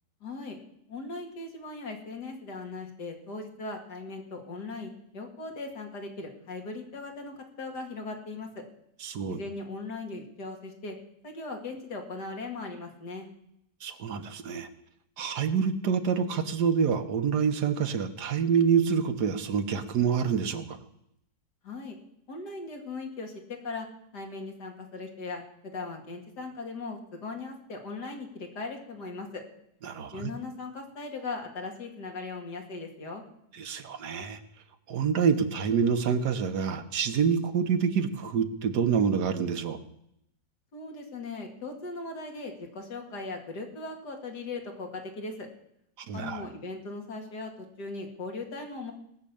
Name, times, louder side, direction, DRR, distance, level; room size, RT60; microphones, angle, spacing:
voice 1, 0.2-0.6 0.9-8.6 9.3-11.0 11.2-13.3 21.6-22.0 22.3-23.9 24.1-29.4 30.1-33.2 40.7-45.5 46.1-48.9, left 3 dB, 80° left, 3 dB, 2.8 m, -39 dB
voice 2, 9.0-9.4 13.8-14.7 15.2-20.8 29.8-30.3 33.5-34.4 34.9-39.8 46.1-46.5, right 6 dB, 80° right, 8 dB, 1.7 m, -27 dB
18.5 x 6.6 x 8.5 m, 0.77 s
omnidirectional pair, 1.7 m